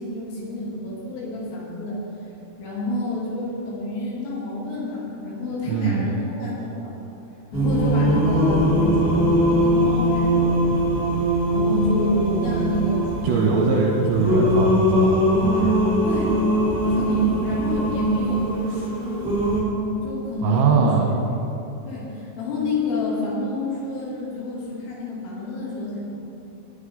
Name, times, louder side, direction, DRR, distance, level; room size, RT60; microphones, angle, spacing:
voice 1, 0.0-2.0 2.6-6.9 7.5-11.1 11.5-13.7 16.0-16.3 16.8-19.3 20.0-20.9 21.9-26.1, left 1 dB, 75° left, -5 dB, 5.5 m, -28 dB
voice 2, 5.7-6.1 13.2-15.8 20.4-21.1, right 5 dB, 75° right, -1 dB, 3.1 m, -21 dB
Singing, 7.5-19.6, equal, ahead, 2.6 m, -21 dB
20.0 x 11.5 x 3.9 m, 2.9 s
omnidirectional pair, 6.0 m